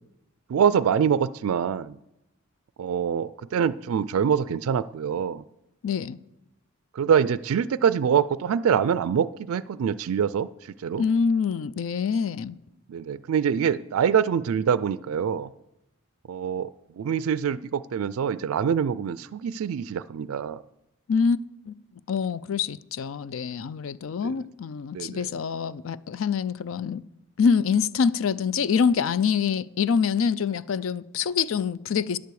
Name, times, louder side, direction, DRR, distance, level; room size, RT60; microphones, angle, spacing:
voice 1, 0.5-2.0 2.8-5.4 6.9-10.5 10.8-11.1 12.9-15.5 16.3-16.7 17.0-20.6 24.2-24.4 24.9-25.3, right 7 dB, 80° right, 0.3 m, -25 dB
voice 2, 5.8-6.2 11.0-12.6 21.1-21.4 21.7-21.8 22.1-27.0 27.4-32.2, left 6 dB, 70° left, 0.4 m, -25 dB
13.5 x 10.5 x 4.8 m
head